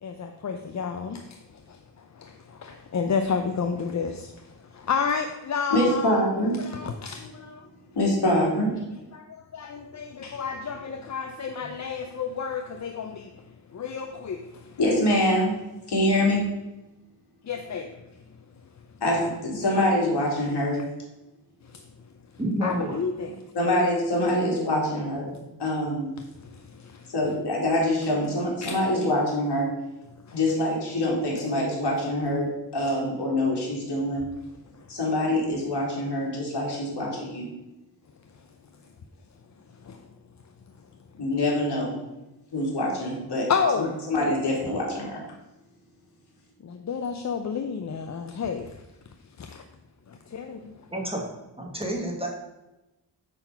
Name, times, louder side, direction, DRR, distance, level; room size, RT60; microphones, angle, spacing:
voice 1, 0.0-6.2 6.6-7.7 9.1-14.8 17.4-18.0 21.6-21.8 22.6-23.4 26.4-27.1 28.6-28.7 30.3-30.4 34.7-34.9 39.8-40.0 43.5-43.9 46.6-48.8 49.4-49.7 50.1-50.7, left 6 dB, 40° left, 0.5 m, -31 dB
voice 2, 5.7-6.6 7.9-8.9 14.8-15.5 15.9-16.5 19.0-20.8 23.5-26.1 27.1-29.7 30.3-34.3 34.9-37.5 41.2-41.9 42.5-43.5 44.1-45.2, left 1 dB, 65° left, 2.7 m, -25 dB
voice 3, 22.4-23.0 43.6-43.7 50.9-51.3 51.6-52.3, equal, 15° right, 1.1 m, -29 dB
8.9 x 4.0 x 5.6 m
wide cardioid pair, 175°, 43 cm